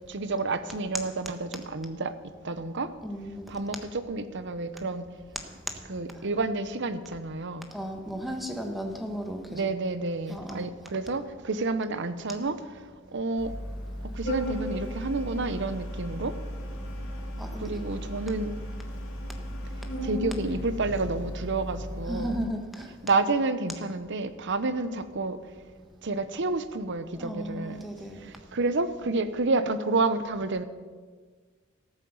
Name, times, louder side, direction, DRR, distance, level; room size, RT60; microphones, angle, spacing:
voice 1, 0.1-2.1 2.4-2.9 3.5-5.1 5.9-7.7 9.5-12.6 13.1-13.5 14.1-16.3 17.6-18.5 20.0-22.4 23.0-25.4 26.0-27.8 28.2-30.6, right 3 dB, 60° right, 0.8 m, -29 dB
voice 2, 3.0-3.6 6.2-6.3 7.7-9.7 10.3-10.9 13.9-14.0 16.6-17.0 17.3-17.8 19.3-20.1 22.0-23.1 27.1-28.2 28.6-28.7, equal, ahead, 1.3 m, -36 dB
Organ, 13.4-22.4, equal, 75° left, 2.4 m, -35 dB
sound 1, 20.3-22.5, left 1 dB, 50° left, 1.4 m, -49 dB
14.0 x 8.7 x 7.1 m
head